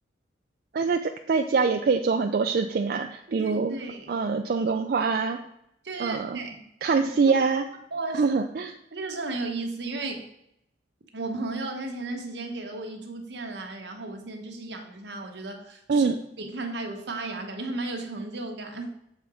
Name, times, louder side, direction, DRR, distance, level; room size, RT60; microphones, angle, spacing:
voice 1, 0.7-3.8 4.1-5.4 6.0-6.4 6.8-7.6 8.1-8.7 15.9-16.2, right 4 dB, 55° right, 5 dB, 0.3 m, -24 dB
voice 2, 3.3-4.1 5.8-6.7 7.3-7.4 7.9-8.3 8.9-10.3 11.1-16.1 16.4-19.0, right 2 dB, 75° right, 4 dB, 1.0 m, -34 dB
7.0 x 4.3 x 4.8 m, 0.78 s
head